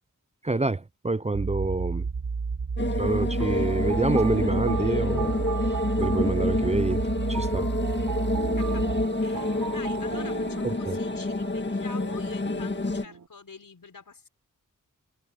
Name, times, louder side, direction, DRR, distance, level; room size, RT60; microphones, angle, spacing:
voice 1, 0.4-2.1 3.0-5.3 6.0-7.0 7.3-7.7 10.6-11.0, right 2 dB, 20° right, 0.5 m, -27 dB
sound 1, 1.3-9.1, right 5 dB, 45° right, 1.3 m, -31 dB
sound 2, 2.8-13.0, left 2 dB, 35° left, 1.8 m, -28 dB
sound 3, 3.4-13.3, right 6 dB, 90° right, 3.9 m, -39 dB
voice 2, 8.6-8.9 9.2-14.3, left 5 dB, 85° left, 5.6 m, -46 dB
wide cardioid pair, 90°, 32 cm